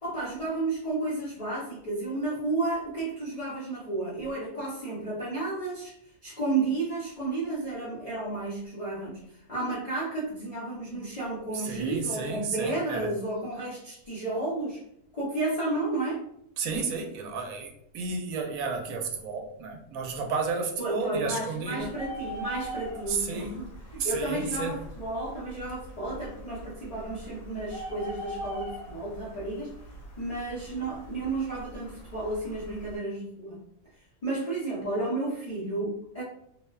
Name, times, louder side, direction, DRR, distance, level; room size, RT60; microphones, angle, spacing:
voice 1, 0.0-5.9 6.2-9.2 9.5-14.8 15.1-16.2 20.8-29.7 30.2-33.6 34.2-36.2, right 2 dB, 60° left, -6 dB, 0.3 m, -32 dB
voice 2, 11.5-13.1 16.6-21.9 23.1-23.6 24.0-24.8, right 4 dB, 80° right, 2 dB, 1.0 m, -32 dB
Bird, 21.8-33.0, right 1 dB, 85° left, 1.3 m, -42 dB
2.8 x 2.1 x 2.2 m, 0.73 s
omnidirectional pair, 1.5 m